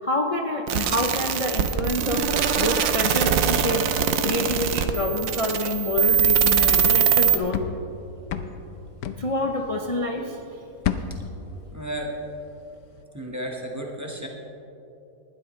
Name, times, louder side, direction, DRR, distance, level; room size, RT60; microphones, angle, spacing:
voice 1, 0.0-2.3 2.6-3.9 4.2-7.6 9.2-10.5 10.9-11.1, left 1 dB, 40° left, 2 dB, 0.5 m, -27 dB
sound 1, 0.7-7.4, right 8 dB, 70° right, 1.1 m, -22 dB
sound 2, 6.8-10.1 10.4-12.5 12.7-13.0, left 8 dB, 85° left, 1.2 m, -33 dB
voice 2, 11.7-12.2 13.1-14.3, right 1 dB, 10° right, -1 dB, 1.4 m, -33 dB
19.5 x 12.0 x 3.2 m, 2.8 s
omnidirectional pair, 1.5 m